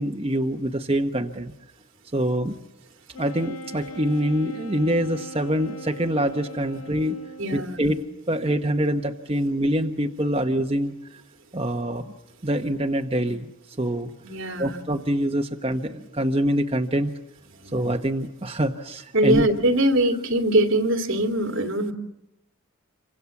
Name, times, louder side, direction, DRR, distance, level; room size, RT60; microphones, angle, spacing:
voice 1, 0.0-1.5 2.1-2.6 3.1-7.2 7.5-11.2 11.5-12.0 12.4-13.5 13.8-14.1 14.6-17.1 17.7-19.4, right 1 dB, 25° right, 3 dB, 1.0 m, -25 dB
Wind instrument woodwind instrument, 3.1-7.8, equal, 85° left, 2.0 m, -40 dB
voice 2, 7.4-8.0 14.2-14.8 17.6-17.7 19.1-21.9, right 1 dB, 65° right, 5 dB, 2.8 m, -22 dB
27.5 x 25.5 x 7.2 m, 0.87 s
head